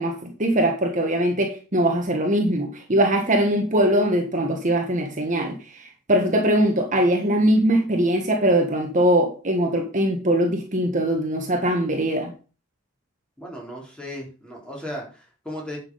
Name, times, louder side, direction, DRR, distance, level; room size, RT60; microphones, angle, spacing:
voice 1, 0.0-12.3, right 1 dB, 40° right, 3 dB, 1.5 m, -21 dB
voice 2, 13.4-15.8, equal, 5° left, -2 dB, 4.0 m, -36 dB
9.9 x 6.1 x 5.6 m, 0.35 s
head